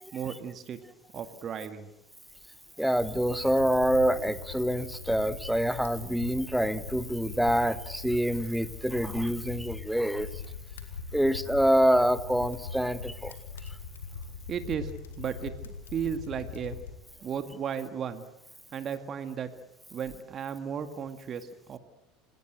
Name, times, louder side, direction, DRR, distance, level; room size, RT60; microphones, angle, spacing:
voice 1, 0.1-0.8 1.1-1.9 14.5-14.9 15.2-15.5 15.9-16.8 17.2-18.3 18.7-19.5 19.9-21.8, right 7 dB, 35° right, 9 dB, 2.1 m, -34 dB
voice 2, 2.8-10.3 11.1-13.3, equal, ahead, 14 dB, 1.4 m, -26 dB
sound 1, 3.0-16.9, left 5 dB, 75° left, 2.5 m, -42 dB
27.5 x 20.0 x 8.0 m, 0.87 s
figure-of-eight pair, 75°, 0 cm